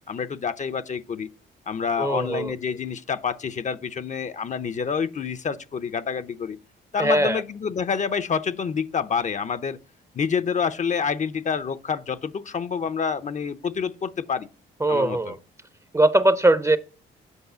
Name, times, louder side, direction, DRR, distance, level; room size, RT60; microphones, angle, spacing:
voice 1, 0.1-1.3 1.7-6.6 6.9-9.8 10.1-14.5 14.9-15.3, left 6 dB, 40° left, 0.6 m, -28 dB
voice 2, 2.0-2.5 7.0-7.4 14.8-15.4 15.9-16.8, right 1 dB, 15° right, 0.6 m, -20 dB
8.1 x 5.5 x 6.7 m
cardioid pair, 90°, 20 cm